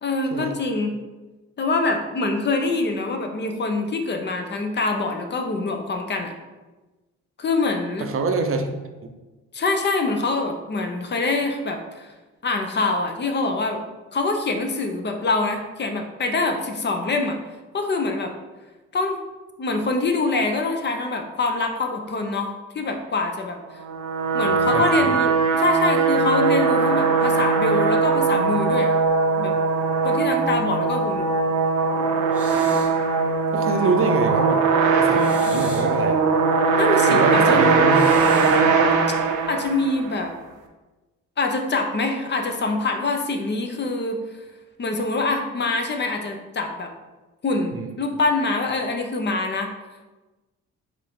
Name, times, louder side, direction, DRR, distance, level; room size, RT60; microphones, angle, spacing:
voice 1, 0.0-0.9 1.6-6.3 7.4-8.1 9.5-12.1 12.4-13.8 14.1-17.4 17.7-18.3 18.9-19.2 19.6-23.8 24.3-29.0 29.4-29.5 30.0-31.3 33.7-34.0 36.8-37.6 39.5-40.3 41.4-44.2 44.8-46.9 47.4-49.7, left 3 dB, 35° left, 4 dB, 0.6 m, -25 dB
voice 2, 8.0-8.7 9.0-9.1 24.5-25.2 33.5-34.6 35.0-36.2 37.1-38.3 47.7-47.9, right 4 dB, 45° right, 5 dB, 0.6 m, -25 dB
sound 1, 23.8-40.1, right 4 dB, 85° right, 0.6 m, -20 dB
sound 2, 32.3-33.0 35.1-36.0 37.9-38.7, equal, 5° right, 1.2 m, -41 dB
5.2 x 2.6 x 3.6 m, 1.2 s
cardioid pair, 90°, 30 cm